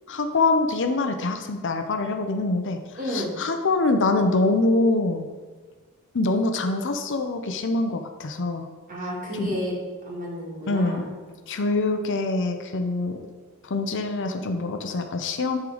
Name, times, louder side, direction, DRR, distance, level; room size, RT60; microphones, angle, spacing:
voice 1, 0.1-2.8 3.1-5.3 6.1-8.7 9.3-9.5 10.7-11.0 11.5-13.2 13.6-15.6, left 2 dB, 55° left, 6 dB, 0.6 m, -24 dB
voice 2, 3.0-3.3 8.9-9.8 10.1-11.2, equal, 35° right, -3 dB, 2.0 m, -31 dB
10.0 x 3.9 x 4.9 m, 1.4 s
head